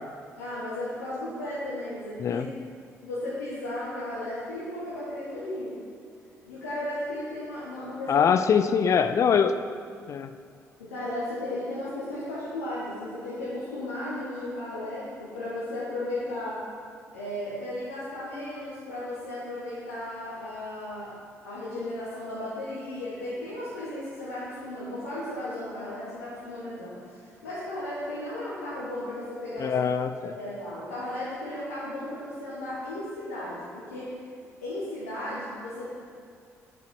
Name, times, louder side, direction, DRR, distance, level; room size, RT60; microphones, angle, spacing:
voice 1, 0.4-2.4 3.0-5.8 6.4-8.3 10.8-16.6 17.1-21.2 21.4-29.8 30.2-34.2 34.6-36.0, left 1 dB, 75° left, -9 dB, 1.1 m, -35 dB
voice 2, 8.1-9.5 10.1-10.3 29.6-30.3, left 7 dB, 40° left, 10 dB, 0.3 m, -23 dB
7.6 x 5.4 x 4.5 m, 2.3 s
figure-of-eight pair, 45°, 8 cm